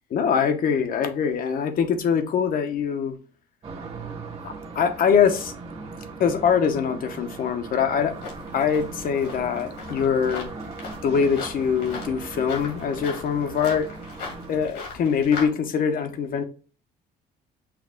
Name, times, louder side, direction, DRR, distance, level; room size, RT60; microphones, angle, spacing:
voice 1, 0.1-3.1 4.4-5.5 6.2-8.1 8.5-10.5 11.0-13.9 14.5-16.4, left 7 dB, 55° left, 0.9 m, -23 dB
sound 1, 3.6-14.7, right 4 dB, 35° right, 1.2 m, -39 dB
sound 2, 8.0-15.5, left 4 dB, 80° left, 2.3 m, -39 dB
5.9 x 2.3 x 3.6 m
cardioid pair, 110°, 17 cm